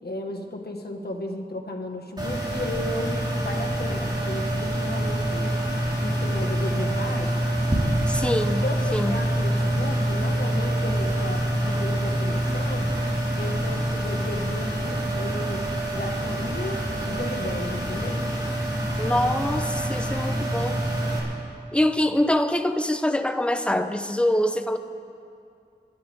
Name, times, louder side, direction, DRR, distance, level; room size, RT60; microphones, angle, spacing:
voice 1, 0.0-5.6 6.0-7.4 8.6-13.0 13.4-18.2, left 1 dB, 60° left, 2 dB, 1.7 m, -34 dB
sound 1, 2.2-21.2, right 1 dB, 25° right, 4.0 m, -26 dB
voice 2, 8.1-8.6 8.9-9.2 19.0-20.8 21.7-24.8, left 1 dB, 5° left, 8 dB, 0.8 m, -24 dB
27.0 x 12.0 x 3.6 m, 2.5 s
wide cardioid pair, 50°, 19 cm